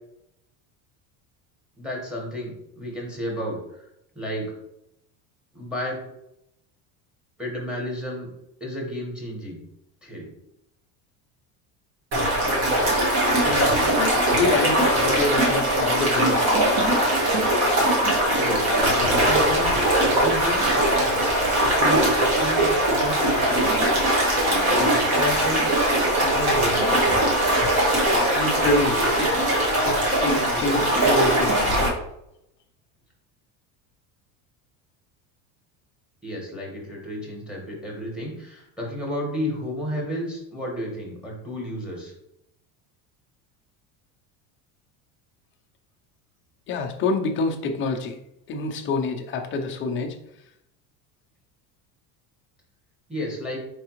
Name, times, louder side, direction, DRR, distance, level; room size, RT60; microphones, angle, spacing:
voice 1, 1.8-3.8 4.1-4.5 5.5-6.0 7.4-8.3 8.6-9.6 10.0-10.3 18.4-23.9 24.7-25.8 26.2-27.1 36.2-42.1 53.1-53.6, equal, ahead, -2 dB, 1.3 m, -32 dB
sound 1, 12.1-31.9, right 1 dB, 40° right, 1.6 m, -21 dB
voice 2, 13.4-16.5 28.4-29.3 29.8-31.5 46.7-48.2 48.5-50.2, left 3 dB, 30° left, 3 dB, 0.6 m, -26 dB
4.6 x 3.4 x 3.0 m, 0.80 s
cardioid pair, 140°, 40 cm